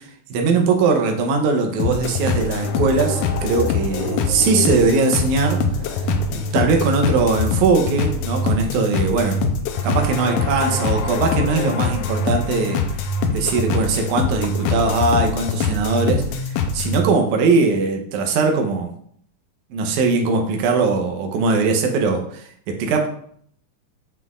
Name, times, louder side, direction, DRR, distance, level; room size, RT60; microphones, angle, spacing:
voice 1, 0.0-5.6 5.9-9.4 9.8-12.8 13.3-18.9 19.7-23.1, right 4 dB, 75° right, 3 dB, 2.2 m, -20 dB
sound 1, 1.8-17.0, left 4 dB, 85° left, 2.1 m, -23 dB
7.3 x 6.0 x 2.4 m, 0.63 s
omnidirectional pair, 3.6 m